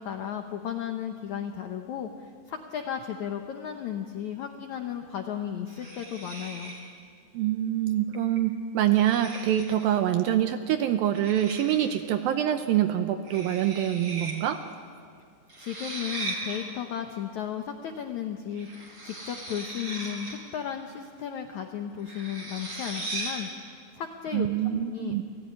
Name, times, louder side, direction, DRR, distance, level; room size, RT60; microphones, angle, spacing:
voice 1, 0.0-6.7 15.6-25.2, left 9 dB, 75° left, 5 dB, 1.7 m, -35 dB
sound 1, 5.7-6.9 8.1-8.4 8.9-10.0 11.1-12.0 13.3-14.4 14.6-14.7 15.5-16.6 18.5-20.5 22.0-23.5, right 2 dB, 30° right, 4.7 m, -38 dB
voice 2, 7.3-14.6 24.3-25.2, right 11 dB, 75° right, 8 dB, 2.2 m, -25 dB
29.0 x 17.5 x 9.6 m, 2.3 s
omnidirectional pair, 4.9 m